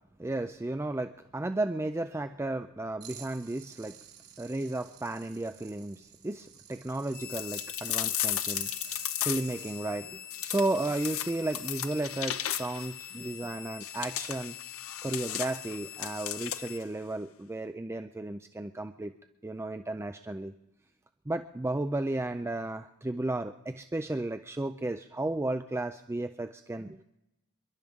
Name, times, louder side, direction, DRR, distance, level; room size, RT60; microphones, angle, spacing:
voice 1, 0.2-3.9 4.4-14.6 15.0-19.1 19.4-20.5 21.3-27.0, right 2 dB, 10° right, 7 dB, 0.4 m, -34 dB
sound 1, 3.0-9.8, right 10 dB, 80° right, 2.7 m, -50 dB
sound 2, 7.1-16.8, left 10 dB, 40° left, 0.8 m, -45 dB
sound 3, 7.3-9.7 10.3-12.9 13.8-16.8, left 12 dB, 65° left, 0.7 m, -35 dB
27.5 x 11.5 x 3.6 m, 0.92 s
head